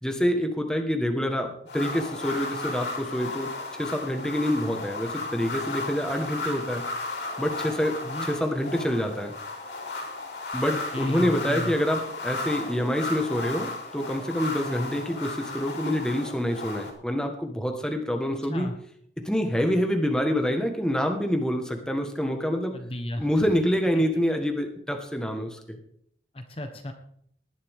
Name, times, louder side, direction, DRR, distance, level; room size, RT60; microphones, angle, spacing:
voice 1, 0.0-6.8 7.4-8.0 8.2-9.3 10.5-18.7 19.2-22.8 23.2-25.8, equal, 5° left, 4 dB, 1.4 m, -26 dB
sound 1, 1.7-16.9, left 3 dB, 80° left, 3.8 m, -34 dB
voice 2, 10.7-11.7 18.5-18.7 22.7-23.5 23.9-24.0 26.3-26.9, left 1 dB, 30° left, 5 dB, 1.1 m, -35 dB
19.0 x 10.5 x 3.6 m, 0.66 s
head